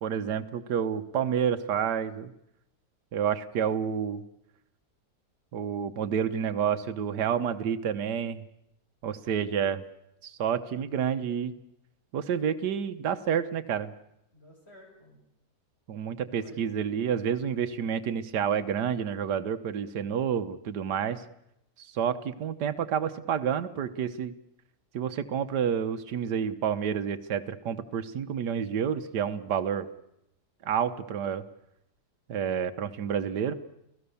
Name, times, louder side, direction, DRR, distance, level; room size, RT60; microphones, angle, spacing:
voice 1, 0.0-2.3 3.1-4.2 5.5-8.4 9.0-9.8 10.2-11.5 12.1-13.9 15.9-21.2 21.8-24.3 24.9-29.9 30.6-31.4 32.3-33.5, right 8 dB, 80° right, 9 dB, 1.7 m, -29 dB
voice 2, 14.3-15.2 16.3-16.9 33.4-33.6, left 1 dB, 35° left, 0 dB, 6.9 m, -53 dB
30.0 x 17.5 x 7.0 m, 0.81 s
omnidirectional pair, 1.8 m